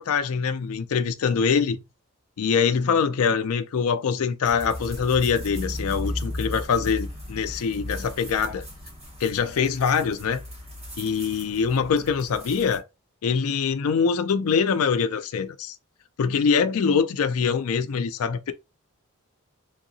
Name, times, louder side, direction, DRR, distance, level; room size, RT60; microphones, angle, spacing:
voice 1, 0.0-1.8 2.4-8.6 9.2-10.4 11.0-12.8 13.2-15.8 16.2-18.5, left 6 dB, 85° left, 0.4 m, -24 dB
sound 1, 4.4-12.8, left 1 dB, 30° right, 1.3 m, -36 dB
3.5 x 2.8 x 2.7 m
head